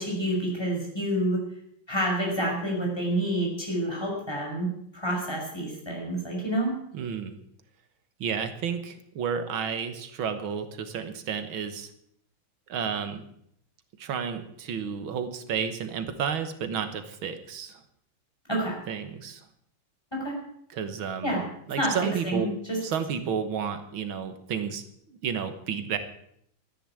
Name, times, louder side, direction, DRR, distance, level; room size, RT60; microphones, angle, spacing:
voice 1, 0.0-1.4 1.9-4.7 4.9-6.8 18.5-18.8 20.1-20.4 21.2-21.4 21.8-22.0 22.2-22.8, right 1 dB, 10° left, -2 dB, 5.8 m, -28 dB
voice 2, 6.9-7.4 8.2-11.9 12.7-13.2 14.0-17.8 18.9-19.4 20.7-21.3 21.7-22.5 22.8-24.8 25.1-26.0, right 7 dB, 85° right, 9 dB, 2.0 m, -31 dB
14.0 x 10.0 x 8.7 m, 0.71 s
omnidirectional pair, 2.2 m